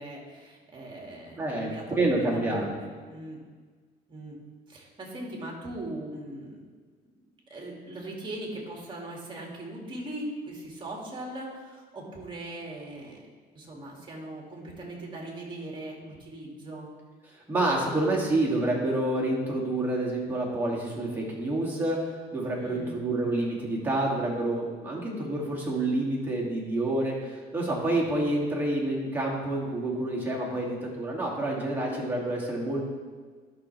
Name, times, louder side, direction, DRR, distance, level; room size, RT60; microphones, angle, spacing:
voice 1, 0.0-1.8 2.2-3.4 4.1-4.4 4.7-6.6 7.5-13.2 13.5-16.9 22.6-22.9, right 1 dB, 30° right, -1 dB, 2.2 m, -40 dB
voice 2, 1.4-2.7 17.5-22.0 22.3-32.8, right 2 dB, 10° right, -4 dB, 2.3 m, -28 dB
12.0 x 5.8 x 3.3 m, 1.5 s
cardioid pair, 110°, 17 cm